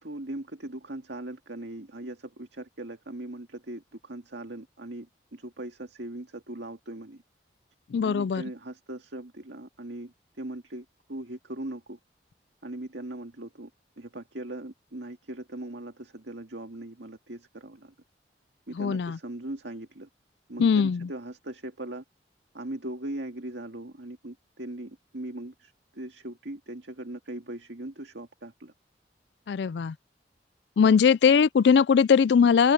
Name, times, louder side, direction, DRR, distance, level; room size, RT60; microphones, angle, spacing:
voice 1, 0.0-5.1 5.3-7.2 8.0-12.0 12.6-13.7 14.0-17.9 18.7-20.1 20.5-22.0 22.5-28.7 30.8-30.9, right 1 dB, 80° right, 2.0 m, -39 dB
voice 2, 7.9-8.4 18.8-19.2 20.6-21.0 29.5-29.9 30.8-32.7, left 6 dB, 70° left, 0.4 m, -20 dB
open air
head